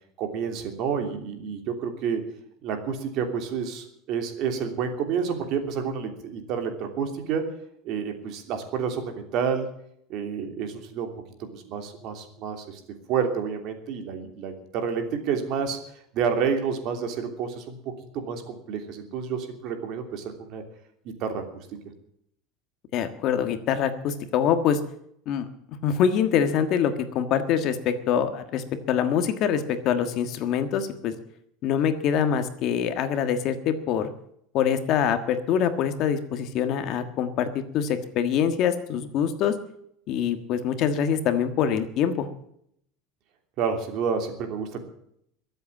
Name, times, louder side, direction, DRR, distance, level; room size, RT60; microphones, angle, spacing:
voice 1, 0.2-2.2 2.6-7.5 7.8-9.7 10.1-11.1 11.4-12.8 13.1-15.8 16.1-17.8 18.1-20.6 21.0-21.5 43.6-44.8, right 6 dB, 45° right, 6 dB, 3.0 m, -29 dB
voice 2, 22.9-24.8 25.3-25.5 25.8-31.1 31.6-34.1 34.5-39.5 40.1-42.3, left 8 dB, 40° left, 9 dB, 1.5 m, -24 dB
22.5 x 8.1 x 7.3 m, 0.71 s
cardioid pair, 165°, 0 cm